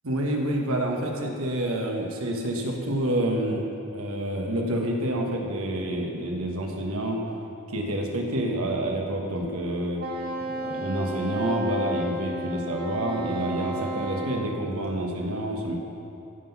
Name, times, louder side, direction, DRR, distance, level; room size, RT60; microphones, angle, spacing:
voice 1, 0.0-3.7 3.9-7.2 7.7-10.0 10.4-15.7, right 1 dB, 85° right, 1 dB, 1.4 m, -28 dB
Wind instrument woodwind instrument, 10.0-14.5, equal, 45° right, 1.8 m, -32 dB
15.0 x 5.9 x 5.8 m, 2.8 s
head